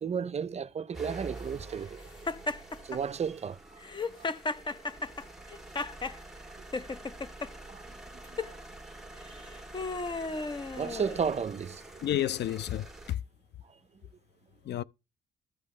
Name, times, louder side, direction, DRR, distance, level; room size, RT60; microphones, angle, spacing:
voice 1, 0.0-2.1 2.8-3.8 4.1-4.3 7.7-7.8 8.3-8.6 9.1-9.5 10.7-11.8, right 6 dB, 35° right, 0.5 m, -34 dB
sound 1, 0.9-13.1, right 2 dB, ahead, 1.7 m, -47 dB
Laughter, 2.3-3.0 3.8-6.2 6.7-7.5 8.2-8.5 9.3-11.5, left 3 dB, 25° left, 0.6 m, -35 dB
voice 2, 12.0-13.2 14.6-14.8, left 12 dB, 60° left, 0.4 m, -31 dB
14.0 x 5.6 x 3.2 m
cardioid pair, 90°, 20 cm